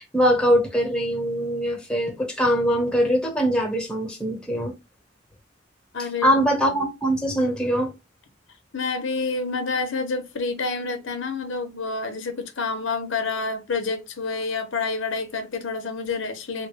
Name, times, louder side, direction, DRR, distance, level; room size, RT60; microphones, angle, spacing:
voice 1, 0.0-4.7 6.2-7.9, equal, 5° left, 1.0 m, -22 dB
voice 2, 5.9-6.4 8.7-16.7, left 4 dB, 85° left, 0.7 m, -28 dB
3.5 x 2.2 x 3.3 m
head